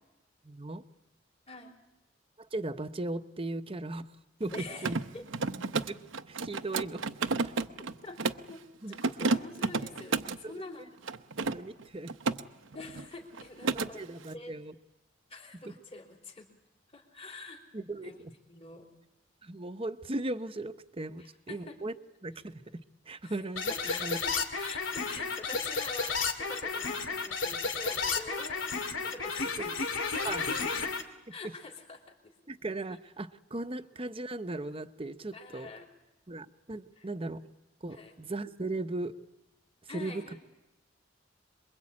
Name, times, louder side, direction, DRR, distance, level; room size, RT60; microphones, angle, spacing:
voice 1, 0.4-0.8 2.5-4.1 4.4-4.5 4.8-5.0 5.9-6.0 6.3-7.0 7.4-7.5 8.8-9.3 10.4-10.7 11.5-12.1 13.7-14.7 15.7-15.8 17.7-18.1 19.4-21.9 22.2-22.6 23.1-24.2 28.0-28.1 29.6-29.7 30.2-30.7 32.5-35.7 36.3-37.4 37.8-39.2 39.9-40.2, right 2 dB, 30° right, 10 dB, 0.9 m, -37 dB
Mechanisms, 4.4-8.5 8.9-10.4 11.0-12.4 12.7-13.1 13.3-13.9, right 3 dB, 80° right, 0.9 m, -32 dB
voice 2, 4.5-5.3 8.0-8.2 8.5-8.6 8.9-11.0 12.7-14.0 14.3-14.5 15.3-16.5 16.9-17.6 18.0-18.2 18.5-18.9 21.2-21.8 23.2-23.4 23.7-29.8 30.2-30.5 31.3-32.3 35.3-35.9 37.0-37.1 37.9-38.2 39.9-40.4, left 3 dB, 30° left, 1 dB, 3.2 m, -46 dB
sound 1, 23.6-31.0, left 4 dB, 85° left, 2.5 m, -32 dB
27.0 x 22.5 x 8.6 m, 0.96 s
head